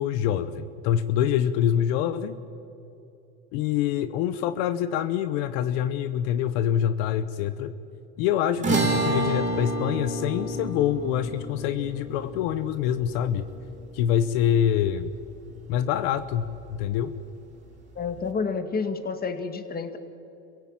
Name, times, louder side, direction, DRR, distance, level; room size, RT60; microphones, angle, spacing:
voice 1, 0.0-2.4 3.5-7.7 8.2-13.5 13.9-15.1 15.7-17.1, left 10 dB, 80° left, 12 dB, 1.0 m, -25 dB
sound 1, 8.6-15.1, right 2 dB, 25° right, 4.1 m, -30 dB
voice 2, 18.0-20.0, left 5 dB, 30° left, 8 dB, 2.1 m, -29 dB
26.5 x 16.5 x 8.9 m, 2.8 s
supercardioid pair, 115°, 31 cm